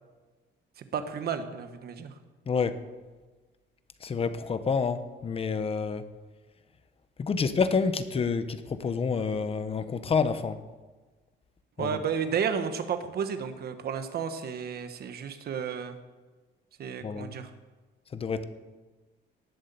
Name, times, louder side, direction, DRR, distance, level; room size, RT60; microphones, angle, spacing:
voice 1, 0.8-2.2 11.8-16.0 16.8-17.5, right 7 dB, 55° right, 9 dB, 1.4 m, -32 dB
voice 2, 2.5-2.8 4.0-6.1 7.2-10.6 11.8-12.0 17.0-17.3 18.1-18.4, left 5 dB, 30° left, 11 dB, 1.0 m, -28 dB
18.5 x 8.2 x 7.0 m, 1.3 s
cardioid pair, 135°, 19 cm